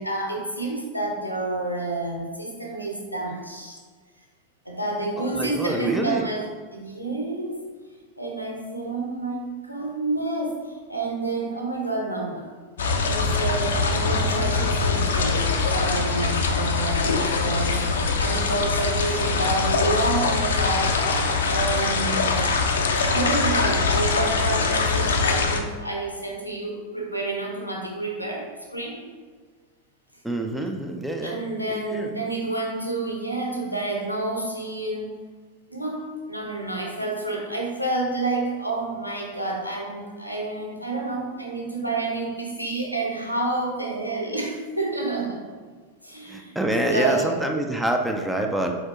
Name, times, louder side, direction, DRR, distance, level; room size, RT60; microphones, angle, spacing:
voice 1, 0.0-3.8 4.6-6.4 6.7-7.7 8.2-12.7 13.0-22.5 23.1-29.0 31.2-35.1 35.7-45.4 46.0-46.5 46.9-47.4, right 2 dB, 90° left, 0 dB, 0.8 m, -29 dB
voice 2, 5.2-6.3 30.2-31.4 31.9-32.1 46.3-48.8, right 1 dB, 5° right, 3 dB, 0.4 m, -26 dB
sound 1, 12.8-25.6, left 4 dB, 65° left, 0.4 m, -23 dB
4.3 x 4.2 x 2.9 m, 1.5 s
figure-of-eight pair, 90°, 0 cm